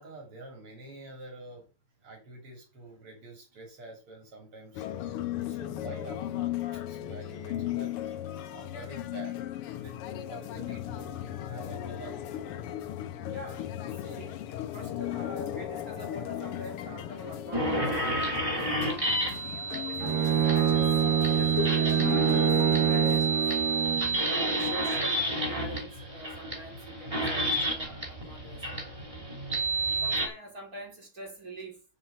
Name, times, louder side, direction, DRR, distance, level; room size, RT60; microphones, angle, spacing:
voice 1, 0.0-1.7 2.0-5.2 5.5-8.0 8.5-9.4 9.8-11.1 11.4-12.2, right 2 dB, 90° right, 4.1 m, -47 dB
sound 1, 4.7-23.2, left 11 dB, 85° left, 1.8 m, -36 dB
voice 2, 13.3-13.7 14.0-14.4 14.7-18.9 19.7-23.4 24.1-29.2 30.0-31.8, right 1 dB, 40° right, 4.4 m, -45 dB
sound 2, 17.5-30.3, right 2 dB, 15° right, 2.6 m, -30 dB
Bowed string instrument, 20.0-24.2, right 9 dB, 70° right, 1.5 m, -25 dB
7.5 x 7.1 x 7.5 m
omnidirectional pair, 2.4 m